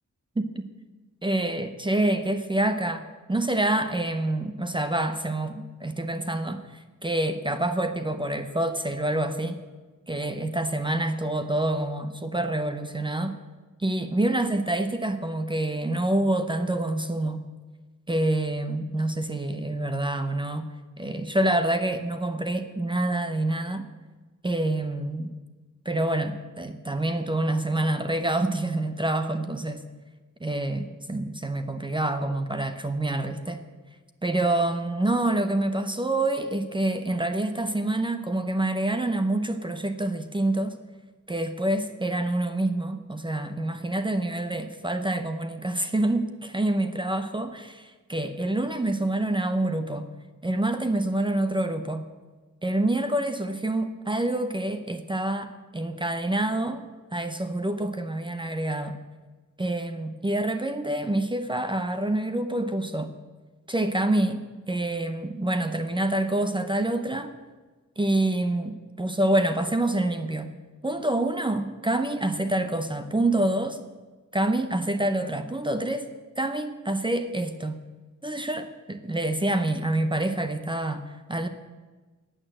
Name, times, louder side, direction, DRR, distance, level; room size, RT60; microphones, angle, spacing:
voice 1, 1.2-3.0 3.3-9.6 10.1-13.4 13.8-17.4 18.1-20.7 21.0-23.9 24.4-25.3 25.9-29.8 30.4-33.6 34.2-40.8 41.3-50.1 50.4-52.0 52.6-56.8 57.1-59.0 59.6-63.1 63.7-67.3 68.0-70.5 70.8-73.8 74.3-76.1 76.4-77.8 78.2-81.5, right 1 dB, 15° right, 9 dB, 0.6 m, -27 dB
15.5 x 8.9 x 7.5 m, 1.3 s
wide cardioid pair, 175°, 32 cm